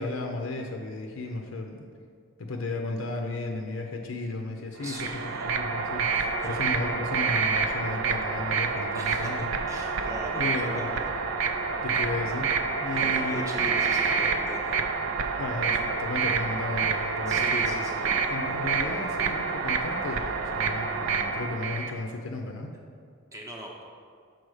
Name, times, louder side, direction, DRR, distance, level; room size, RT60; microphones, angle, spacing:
voice 1, 0.0-1.9 2.4-9.5 10.3-10.9 11.8-13.6 15.4-17.6 18.3-22.7, left 2 dB, 70° left, 2 dB, 0.6 m, -34 dB
voice 2, 4.8-5.5 6.4-6.7 8.9-11.1 11.5-11.8 13.0-14.8 17.3-18.6 23.3-23.8, right 1 dB, 15° right, -1 dB, 0.7 m, -40 dB
sound 1, 4.8-21.9, right 5 dB, 75° right, 0.5 m, -28 dB
6.3 x 4.4 x 4.8 m, 2.2 s
head